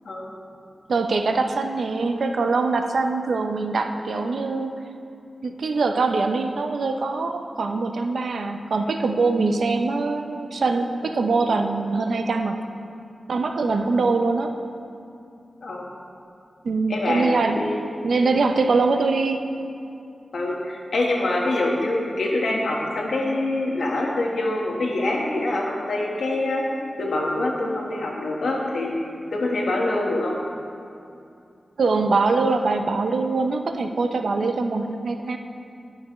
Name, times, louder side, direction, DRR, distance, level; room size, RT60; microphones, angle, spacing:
voice 1, 0.9-4.8 5.4-12.6 13.3-14.5 16.6-17.6 18.0-19.5 31.8-35.4, right 3 dB, 80° right, 6 dB, 0.5 m, -23 dB
voice 2, 16.9-17.9 20.3-26.7 27.0-28.9 29.3-30.4, left 2 dB, 90° left, -1 dB, 1.2 m, -25 dB
11.5 x 6.2 x 3.1 m, 2.5 s
wide cardioid pair, 105°, 0 cm